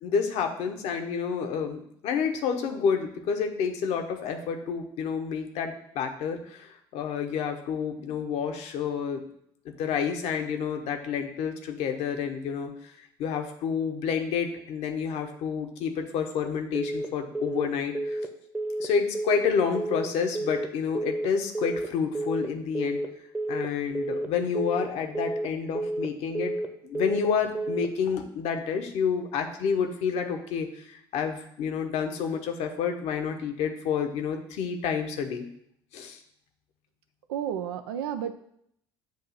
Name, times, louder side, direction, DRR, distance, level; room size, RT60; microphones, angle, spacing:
voice 1, 0.0-9.2 9.6-12.7 13.0-18.2 18.8-23.0 23.5-26.5 26.8-35.4 35.9-36.2, left 6 dB, 55° left, 5 dB, 0.9 m, -29 dB
Telephone, 16.7-17.1 17.3-17.7 17.9-18.3 18.5-18.9 19.1-19.5 19.7-20.1 20.3-20.7 20.9-21.3 21.5-21.9 22.1-22.5 22.7-23.1 23.3-23.7 23.9-24.3 24.5-24.9 25.1-25.5 25.7-26.1 26.3-26.7 26.9-27.3 27.5-27.9, right 1 dB, 15° right, 0.9 m, -30 dB
voice 2, 37.3-38.3, right 9 dB, 70° right, 8 dB, 0.4 m, -31 dB
7.4 x 2.8 x 5.5 m, 0.71 s
figure-of-eight pair, 55°, 13 cm